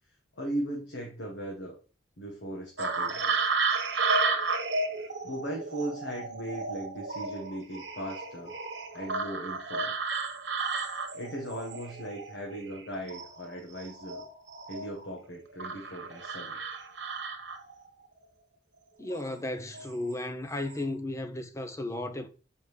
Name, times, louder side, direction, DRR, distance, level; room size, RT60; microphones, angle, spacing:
voice 1, 0.3-1.8 2.2-3.3 5.0-8.5 8.9-9.9 11.1-14.3 14.7-16.6, right 1 dB, 70° left, 1.4 m, -38 dB
sound 1, 2.8-12.8 13.1-15.1 15.6-17.9 19.0-19.3 19.7-20.2 20.5-20.8, right 4 dB, 60° right, 1.4 m, -33 dB
voice 2, 19.0-22.3, left 1 dB, 15° left, 0.6 m, -34 dB
7.0 x 5.1 x 3.2 m
head